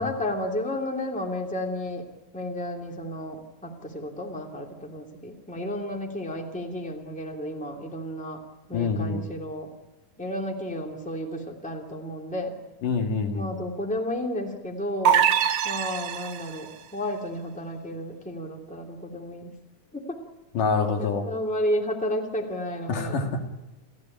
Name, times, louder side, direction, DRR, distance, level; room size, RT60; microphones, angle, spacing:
voice 1, 0.0-2.0 2.3-8.4 8.7-9.7 10.2-12.6 13.3-15.3 15.6-19.5 19.9-20.2 21.0-23.2, left 1 dB, ahead, 1 dB, 2.5 m, -32 dB
voice 2, 8.7-9.3 12.8-13.5 20.6-21.2 22.9-23.3, left 4 dB, 75° left, 4 dB, 3.5 m, -26 dB
sound 1, 15.0-16.7, right 9 dB, 65° right, 1.6 m, -23 dB
29.0 x 14.5 x 8.8 m, 1.1 s
omnidirectional pair, 3.8 m